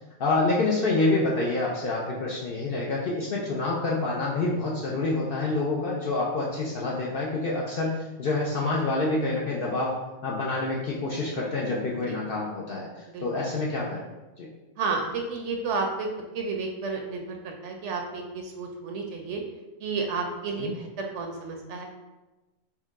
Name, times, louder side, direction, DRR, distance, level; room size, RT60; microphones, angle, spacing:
voice 1, 0.2-9.9 10.2-12.9 13.2-14.1 14.4-14.5 20.6-20.7, left 2 dB, 60° left, -3 dB, 0.6 m, -27 dB
voice 2, 13.1-13.5 14.8-16.1 16.3-19.4 19.8-21.8, right 4 dB, 65° right, 2 dB, 0.8 m, -31 dB
4.5 x 2.2 x 3.5 m, 1.1 s
omnidirectional pair, 1.4 m